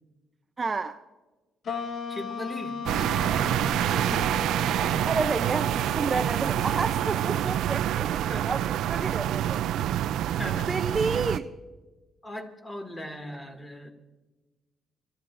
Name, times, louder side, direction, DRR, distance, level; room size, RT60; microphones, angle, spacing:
voice 1, 0.6-1.0 5.1-9.6 10.7-11.5, right 4 dB, 30° right, 8 dB, 0.5 m, -30 dB
sound 1, 1.6-8.3, left 5 dB, 60° left, 0.9 m, -38 dB
voice 2, 2.1-2.8 3.7-4.4 8.3-8.5 10.4-10.7 12.2-13.9, left 1 dB, 20° left, 4 dB, 2.2 m, -39 dB
sound 2, 2.9-11.4, right 11 dB, 85° right, 0.3 m, -27 dB
29.5 x 12.5 x 2.5 m, 1.2 s
cardioid pair, 90°, 0 cm